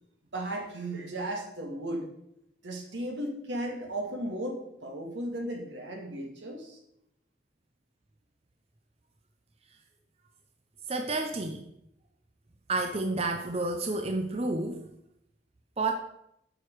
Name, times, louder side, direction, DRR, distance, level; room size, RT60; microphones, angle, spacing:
voice 1, 0.3-2.1 2.6-6.8, right 1 dB, 80° right, 2 dB, 2.1 m, -35 dB
voice 2, 10.9-11.6 12.7-14.9 15.8-15.9, right 2 dB, 35° right, 5 dB, 0.6 m, -30 dB
8.9 x 6.7 x 4.7 m, 0.78 s
head